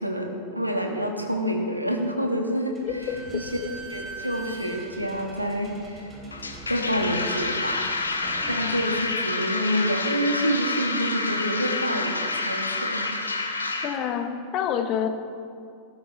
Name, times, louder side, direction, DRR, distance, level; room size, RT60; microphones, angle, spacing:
voice 1, 0.0-3.0 3.3-3.5 3.9-6.1 6.7-7.9 8.5-13.1, equal, 90° right, 3 dB, 1.4 m, -27 dB
Slam / Squeak, 2.7-10.0, right 2 dB, 20° right, 3.4 m, -42 dB
voice 2, 2.8-3.2 13.8-15.1, left 9 dB, 40° left, 8 dB, 1.0 m, -27 dB
sound 1, 6.3-13.9, left 3 dB, 75° left, 1.1 m, -28 dB
17.0 x 12.5 x 3.2 m, 2.3 s
figure-of-eight pair, 90°, 0 cm